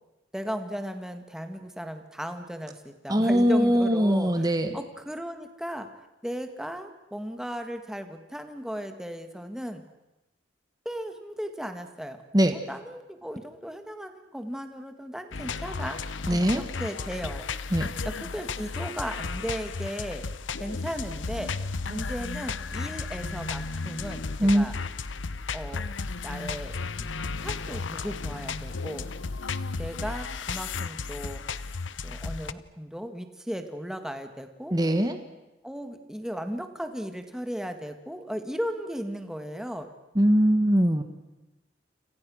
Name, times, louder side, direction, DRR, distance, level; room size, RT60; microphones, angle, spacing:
voice 1, 0.3-5.9 6.2-9.8 10.9-12.2 12.5-16.0 16.3-17.5 18.0-20.2 20.6-21.5 21.9-24.8 25.5-25.9 26.2-29.1 29.8-31.4 32.0-34.8 35.6-39.9, equal, 5° right, 7 dB, 1.9 m, -36 dB
voice 2, 3.1-4.8 12.3-12.6 16.3-16.6 17.7-17.9 24.4-24.7 34.7-35.2 40.1-41.0, equal, 20° right, 7 dB, 1.5 m, -21 dB
sound 1, 15.3-32.5, left 4 dB, 90° left, 0.9 m, -34 dB
29.0 x 26.5 x 6.4 m, 1.0 s
head